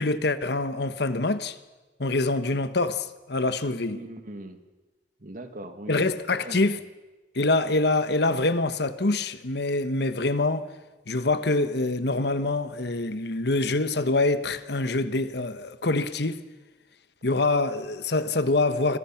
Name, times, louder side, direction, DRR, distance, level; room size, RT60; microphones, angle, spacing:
voice 1, 0.0-1.6 2.0-4.0 5.9-6.8 7.3-10.7 11.1-16.4 17.2-19.0, left 2 dB, 65° left, 1.3 m, -25 dB
voice 2, 3.7-4.6 5.2-6.1 6.4-6.6, right 1 dB, 50° right, 2.2 m, -40 dB
30.0 x 25.5 x 6.0 m
head